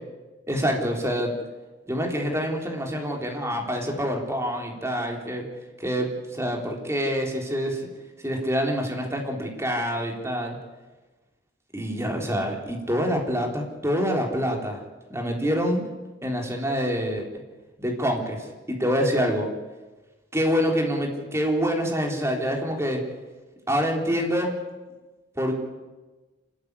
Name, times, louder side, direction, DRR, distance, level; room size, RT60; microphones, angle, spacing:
voice 1, 0.5-1.3 1.9-5.4 5.8-7.9 8.2-10.6 11.7-14.8 15.1-15.9 16.2-17.3 17.8-19.5 20.3-23.0 23.7-24.6 25.4-25.6, equal, 15° right, 1 dB, 3.7 m, -26 dB
27.5 x 13.0 x 9.9 m, 1.2 s
head